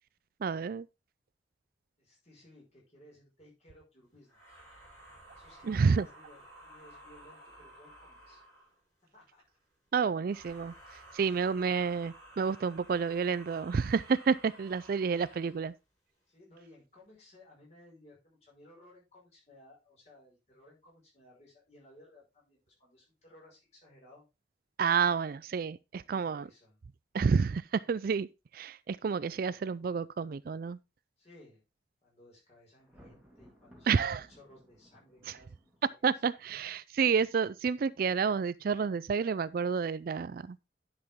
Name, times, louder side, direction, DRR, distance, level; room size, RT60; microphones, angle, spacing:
voice 1, 0.4-0.9 5.6-6.1 9.9-15.7 24.8-26.5 27.1-28.3 28.5-30.8 33.9-34.3 35.2-35.4 36.0-40.6, right 5 dB, 50° right, 0.3 m, -30 dB
voice 2, 2.0-4.6 5.3-8.4 9.1-9.4 16.3-24.3 26.0-26.8 31.2-31.6 32.0-35.8 36.0-36.2, left 1 dB, 35° left, 5.6 m, -59 dB
sound 1, 4.3-8.8 10.2-15.7, right 1 dB, 20° left, 5.2 m, -54 dB
Thunder, 32.8-36.1, equal, 5° right, 2.1 m, -59 dB
10.5 x 6.1 x 3.6 m
head